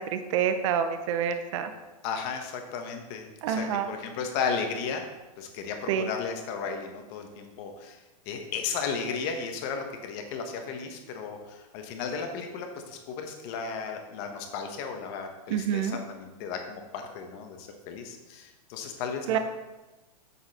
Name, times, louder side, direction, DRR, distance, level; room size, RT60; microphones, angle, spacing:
voice 1, 0.0-1.7 3.4-4.0 5.9-6.1 15.5-16.0 19.3-19.4, right 8 dB, 50° right, 8 dB, 0.7 m, -27 dB
voice 2, 2.0-5.0 5.4-8.0 8.2-19.4, left 5 dB, 40° left, 4 dB, 1.2 m, -34 dB
7.1 x 6.5 x 4.2 m, 1.1 s
supercardioid pair, 150°, 20 cm